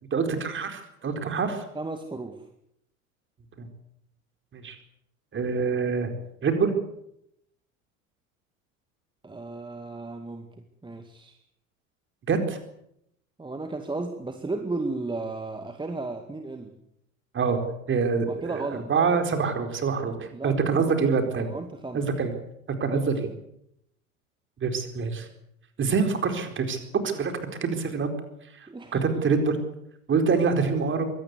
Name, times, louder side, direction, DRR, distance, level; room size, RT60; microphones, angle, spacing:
voice 1, 0.1-1.6 3.6-3.7 4.5-4.8 5.3-6.1 6.4-6.8 12.3-12.6 17.3-17.6 17.9-21.5 21.9-22.3 22.7-23.3 24.6-25.3 25.8-28.1 28.5-28.7 28.9-29.6 30.1-31.0, right 5 dB, 30° right, 6 dB, 4.3 m, -25 dB
voice 2, 1.8-2.4 9.2-10.5 10.8-11.4 13.4-16.7 18.3-18.9 20.3-21.0 21.4-22.0 22.9-23.1 28.7-29.0, right 3 dB, 10° right, 6 dB, 2.1 m, -34 dB
23.5 x 18.0 x 8.2 m, 0.77 s
figure-of-eight pair, 75°, 41 cm